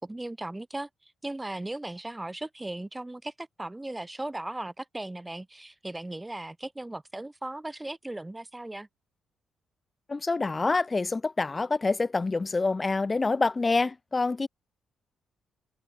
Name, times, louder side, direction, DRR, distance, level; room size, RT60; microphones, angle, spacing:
voice 1, 0.0-8.9, right 2 dB, 15° right, 3.1 m, -37 dB
voice 2, 10.1-14.5, left 3 dB, 30° left, 2.9 m, -26 dB
cardioid pair, 70°, 0 cm